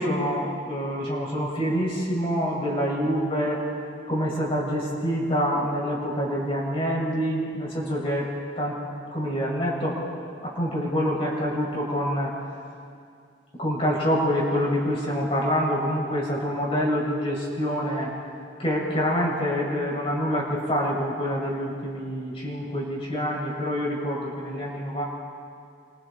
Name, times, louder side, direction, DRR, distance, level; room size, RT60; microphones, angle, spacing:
voice 1, 0.0-3.6 4.1-8.3 8.6-8.8 9.1-10.0 10.4-12.3 13.6-18.1 18.6-25.0, equal, 30° left, -4 dB, 6.0 m, -26 dB
28.5 x 25.0 x 4.3 m, 2.3 s
head